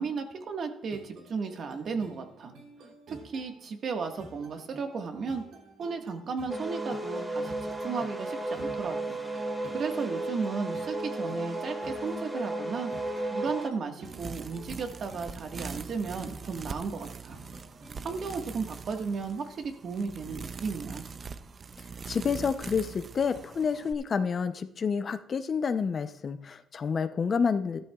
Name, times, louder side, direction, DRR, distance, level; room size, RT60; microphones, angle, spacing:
voice 1, 0.0-2.5 2.8-5.4 5.8-9.2 9.7-12.9 13.3-17.4 18.0-21.0, right 5 dB, 60° right, 4 dB, 1.6 m, -35 dB
sound 1, 0.9-18.3, right 3 dB, 85° right, 3.1 m, -51 dB
sound 2, 6.5-13.7, right 1 dB, 5° right, 2.0 m, -34 dB
sound 3, 14.0-23.9, right 5 dB, 40° right, 0.6 m, -42 dB
voice 2, 22.1-27.8, left 6 dB, 45° left, 10 dB, 0.7 m, -29 dB
15.0 x 12.0 x 2.4 m, 0.83 s
cardioid pair, 90°, 0 cm